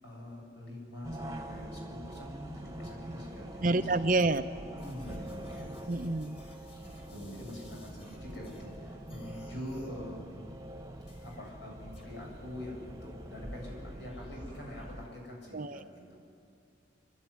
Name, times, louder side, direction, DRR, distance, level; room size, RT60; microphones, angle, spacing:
voice 1, 0.0-4.2 4.7-5.7 6.7-10.4 11.2-16.1, left 1 dB, 65° left, -1 dB, 7.8 m, -45 dB
sound 1, 1.0-15.1, right 1 dB, 20° right, 1.5 m, -45 dB
voice 2, 3.6-4.4 5.9-6.4 15.5-15.8, right 2 dB, 45° right, 10 dB, 0.7 m, -28 dB
sound 2, 4.8-8.8 9.1-10.0 11.1-11.5 11.9-14.8, equal, 30° left, 4.5 m, -57 dB
29.0 x 12.5 x 9.8 m, 2.4 s
head